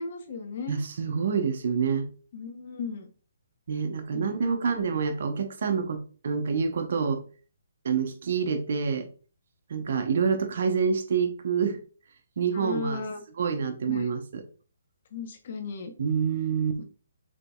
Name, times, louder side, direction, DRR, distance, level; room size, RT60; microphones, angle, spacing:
voice 1, 0.0-0.8 2.3-3.1 4.1-4.5 12.5-13.2 13.9-14.1 15.1-15.9 16.8-16.9, left 4 dB, 50° left, 1.0 m, -36 dB
voice 2, 0.7-2.1 3.7-7.2 7.8-9.1 9.7-11.8 12.4-13.0 13.4-14.4 16.0-16.8, right 6 dB, 60° right, 0.8 m, -27 dB
5.0 x 3.8 x 2.3 m
hypercardioid pair, 145°, 0 cm